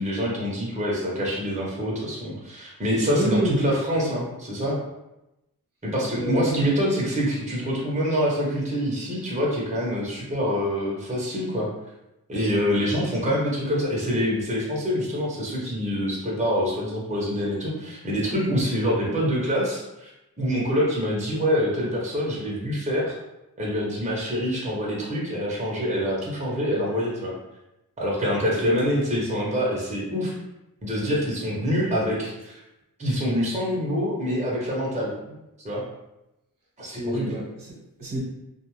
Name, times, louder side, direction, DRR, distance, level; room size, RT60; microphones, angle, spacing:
voice 1, 0.0-4.8 5.8-11.7 12.3-20.1 20.4-23.1 23.6-27.3 28.0-30.4 30.8-32.6 33.0-35.1 35.6-35.8 36.8-37.3, equal, 20° right, -4 dB, 0.9 m, -25 dB
voice 2, 3.1-3.6 6.1-6.7 28.6-29.0 31.6-32.1 36.8-38.2, equal, 60° right, -4 dB, 1.0 m, -29 dB
2.4 x 2.3 x 3.1 m, 0.93 s
cardioid pair, 60°, 37 cm